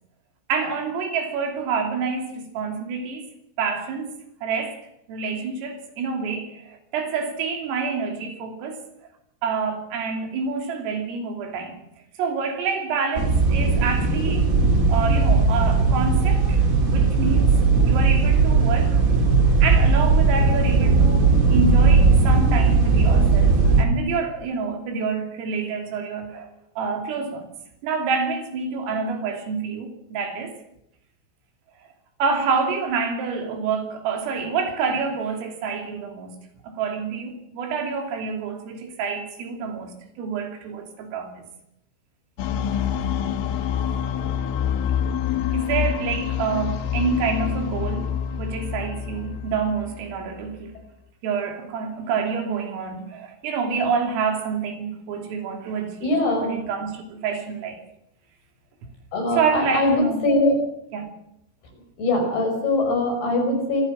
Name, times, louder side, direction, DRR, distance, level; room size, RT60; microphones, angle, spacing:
voice 1, 0.5-3.3 3.6-4.2 4.4-4.8 5.1-8.8 9.4-11.8 12.2-14.5 14.9-17.6 17.8-19.0 19.6-26.5 26.8-27.5 27.8-30.6 32.2-36.4 36.6-41.5 45.5-50.8 51.2-56.1 56.4-57.8 59.3-60.3 60.9-61.1, right 5 dB, 85° right, 5.5 m, -27 dB
sound 1, 13.1-23.8, right 4 dB, 50° right, 0.9 m, -18 dB
sound 2, 42.4-50.5, left 9 dB, 75° left, 3.6 m, -27 dB
voice 2, 56.0-56.5 59.1-60.5 62.0-63.8, left 2 dB, 50° left, 7.2 m, -22 dB
25.0 x 14.5 x 7.5 m
omnidirectional pair, 5.8 m